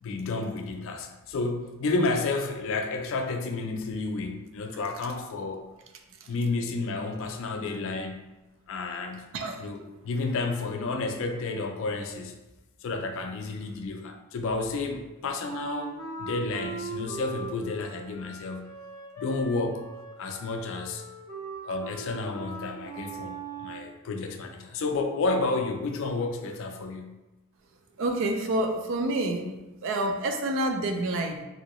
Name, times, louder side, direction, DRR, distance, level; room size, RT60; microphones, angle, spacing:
voice 1, 0.0-5.7 6.3-8.3 8.7-9.3 9.6-12.4 12.8-18.7 19.2-19.9 20.2-21.0 21.6-27.2, left 3 dB, 60° left, 5 dB, 0.4 m, -31 dB
Wind instrument woodwind instrument, 15.4-23.9, right 3 dB, 15° left, 0.7 m, -40 dB
voice 2, 28.0-29.5 29.8-31.5, right 1 dB, 60° right, 4 dB, 0.4 m, -28 dB
3.1 x 2.7 x 2.9 m, 1.1 s
head